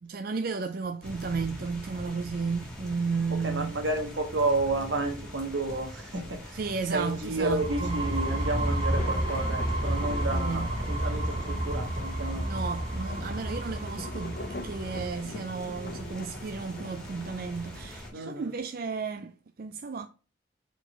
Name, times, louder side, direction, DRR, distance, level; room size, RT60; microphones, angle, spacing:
voice 1, 0.0-3.7 6.5-8.0 10.3-10.7 12.3-20.1, right 4 dB, 50° right, 0.4 m, -33 dB
sound 1, 1.0-18.1, equal, 5° left, 1.7 m, -42 dB
voice 2, 3.4-6.6 6.9-12.7 18.1-18.5, right 2 dB, 85° right, 1.5 m, -31 dB
sound 2, 7.4-15.0, right 1 dB, 30° right, 1.9 m, -31 dB
sound 3, 8.1-18.4, left 3 dB, 55° left, 0.9 m, -44 dB
4.7 x 4.0 x 5.5 m
head